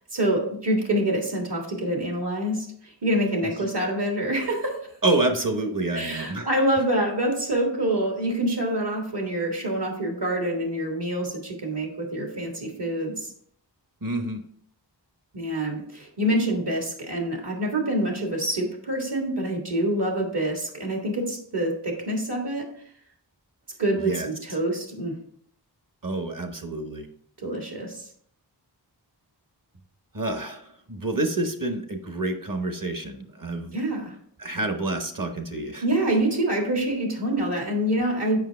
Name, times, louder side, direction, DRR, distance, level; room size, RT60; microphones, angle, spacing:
voice 1, 0.1-4.8 5.9-13.3 15.3-22.6 23.8-25.2 27.4-28.0 33.7-34.1 35.8-38.4, right 1 dB, 65° right, 1 dB, 1.8 m, -26 dB
voice 2, 5.0-6.5 14.0-14.4 24.0-24.3 26.0-27.1 30.1-33.8 34.4-35.8, right 2 dB, 45° right, 6 dB, 1.1 m, -28 dB
7.4 x 5.3 x 3.4 m, 0.65 s
wide cardioid pair, 45°, 43 cm